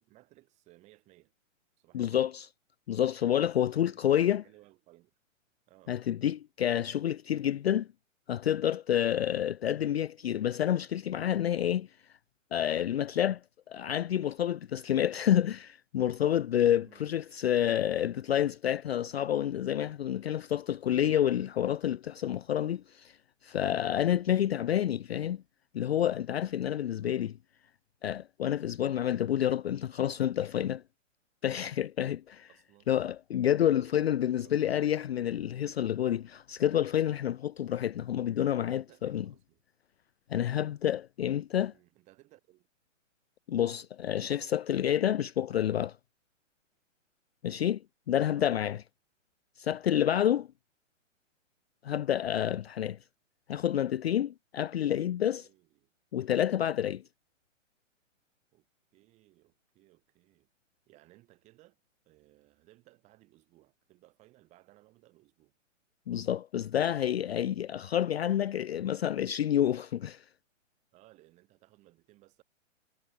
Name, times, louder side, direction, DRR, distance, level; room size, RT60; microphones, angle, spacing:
voice 1, 0.0-1.3 1.8-2.3 3.7-5.1 5.7-6.0 16.7-17.2 26.7-27.3 32.5-32.9 33.6-34.8 38.5-39.6 41.6-42.7 44.2-44.5 48.3-48.6 55.3-55.9 58.5-58.7 58.9-60.5 60.9-61.8 62.1-65.5 70.9-72.4, right 18 dB, 15° right, 6.9 m, -61 dB
voice 2, 1.9-2.5 2.9-4.4 5.9-7.9 8.3-11.9 12.5-13.4 13.7-23.1 23.4-25.4 25.7-27.3 28.0-30.8 31.4-32.5 32.9-39.2 40.3-41.7 43.5-46.0 47.4-47.8 48.1-48.8 49.6-50.5 51.8-53.0 53.5-55.5 56.1-57.0 66.1-70.2, left 10 dB, 55° left, 0.4 m, -29 dB
hypercardioid pair, 170°, 38 cm